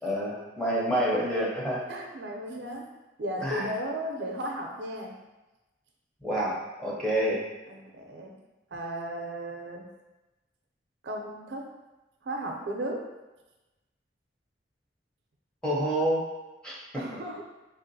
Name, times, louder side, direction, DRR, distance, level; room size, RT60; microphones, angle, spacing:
voice 1, 0.0-1.8 3.4-3.7 6.2-7.4 15.6-16.3 16.6-17.0, right 1 dB, 5° left, -6 dB, 0.6 m, -28 dB
voice 2, 1.9-2.8 3.2-5.1 7.7-8.3 8.7-9.8 11.0-11.6 12.2-13.0 16.9-17.5, right 1 dB, 75° right, 1 dB, 0.5 m, -35 dB
3.4 x 2.5 x 2.6 m, 1.1 s
head